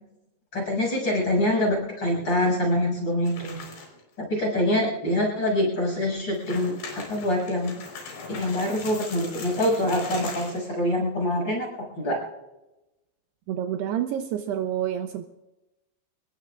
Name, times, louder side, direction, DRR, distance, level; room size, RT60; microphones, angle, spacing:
voice 1, 0.5-3.6 4.2-7.8 8.3-12.2, left 1 dB, 25° left, -1 dB, 7.5 m, -25 dB
sound 1, 3.3-4.0 4.4-4.5 5.1-5.2 6.2-10.7, left 4 dB, 70° left, 6.4 m, -40 dB
voice 2, 13.5-15.2, right 10 dB, 75° right, 6 dB, 2.7 m, -28 dB
26.0 x 21.0 x 2.4 m, 1.0 s
omnidirectional pair, 5.1 m